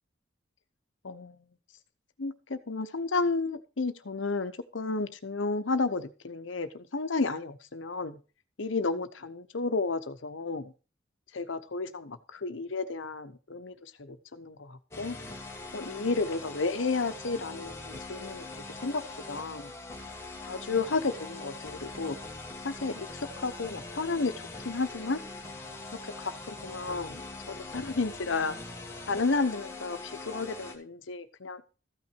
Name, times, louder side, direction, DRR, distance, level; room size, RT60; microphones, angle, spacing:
voice 1, 1.0-1.4 2.2-8.2 8.6-10.7 11.3-15.2 15.7-18.5 18.8-19.0 19.3-19.7 20.4-22.2 22.6-25.2 25.9-28.6 29.1-31.6, left 3 dB, 80° left, 11 dB, 0.9 m, -32 dB
sound 1, 14.9-30.7, left 2 dB, 15° left, 1.4 m, -42 dB
14.0 x 5.9 x 4.5 m, 0.33 s
head